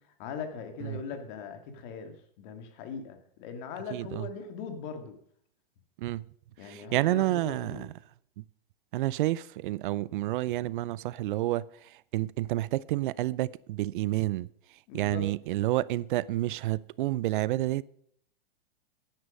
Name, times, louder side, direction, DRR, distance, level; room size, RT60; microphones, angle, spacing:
voice 1, 0.2-5.2 6.6-7.9 14.9-15.2, left 6 dB, 50° left, 2.5 m, -40 dB
voice 2, 3.9-4.3 6.0-6.3 6.6-7.9 8.4-8.5 8.9-14.5 14.9-17.8, right 16 dB, 60° right, 0.5 m, -29 dB
11.0 x 10.0 x 5.3 m
hypercardioid pair, 120°, 30 cm